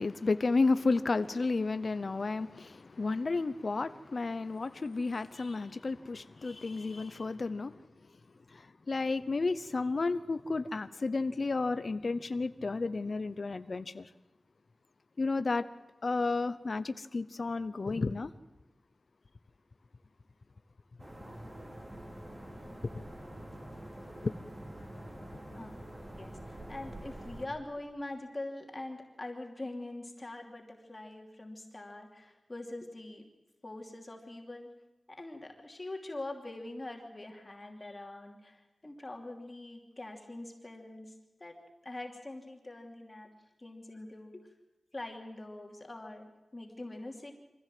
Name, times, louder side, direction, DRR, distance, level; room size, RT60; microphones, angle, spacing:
voice 1, 0.0-7.8 8.5-14.1 15.2-15.7 16.0-18.3 22.9-23.1 24.2-24.3, left 3 dB, 55° left, 0.7 m, -32 dB
sound 1, 21.0-27.5, right 1 dB, 25° right, 3.7 m, -46 dB
voice 2, 26.2-33.2 33.6-34.7 35.1-41.1 41.4-41.6 41.8-43.3 43.6-44.4 44.9-47.3, left 2 dB, 30° left, 2.8 m, -43 dB
24.5 x 15.5 x 7.7 m
wide cardioid pair, 80°, 0 cm